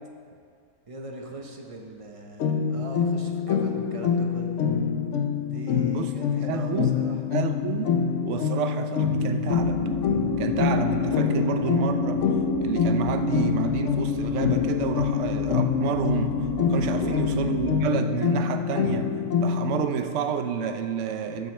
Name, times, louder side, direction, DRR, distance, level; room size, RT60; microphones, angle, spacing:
voice 1, 0.9-4.6 5.5-7.2 16.7-17.2, right 2 dB, 30° right, 2 dB, 0.6 m, -40 dB
sound 1, 2.4-19.8, left 7 dB, 65° left, 0.9 m, -26 dB
voice 2, 6.5-7.0 7.3-8.0 8.2-9.8 10.4-12.2 12.6-16.4 16.7-19.1 19.4-21.5, right 7 dB, 65° right, 8 dB, 0.8 m, -29 dB
sound 2, 9.5-17.7, left 3 dB, 25° left, 1.4 m, -30 dB
13.5 x 7.5 x 3.2 m, 2.3 s
omnidirectional pair, 1.5 m